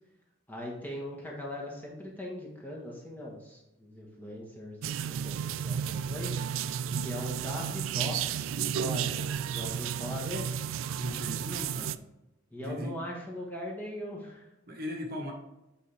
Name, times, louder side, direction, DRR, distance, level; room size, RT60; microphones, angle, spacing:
voice 1, 0.5-6.4 7.0-10.6 12.5-14.4, left 1 dB, 10° left, -3 dB, 1.3 m, -40 dB
sound 1, 4.8-12.0, right 8 dB, 80° right, 0.3 m, -33 dB
voice 2, 6.9-7.3 11.0-12.0 12.6-12.9 14.7-15.3, equal, 50° right, 2 dB, 1.2 m, -38 dB
8.3 x 4.1 x 3.4 m, 0.91 s
head